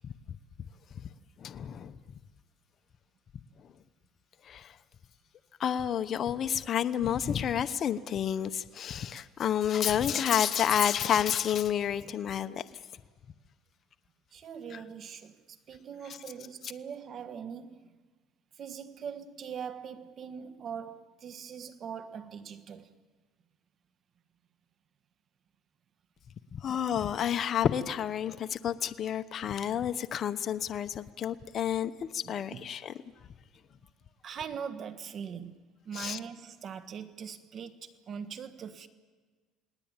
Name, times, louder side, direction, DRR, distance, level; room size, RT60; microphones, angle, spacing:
voice 1, 1.4-2.0 4.4-4.8 5.6-12.6 14.7-14.8 26.5-32.9 35.9-36.2, left 9 dB, 45° left, 0.9 m, -30 dB
voice 2, 14.3-18.0 18.5-22.9 32.2-32.7 34.2-38.9, right 7 dB, 45° right, 1.5 m, -42 dB
29.5 x 19.0 x 9.0 m
cardioid pair, 110°, 0 cm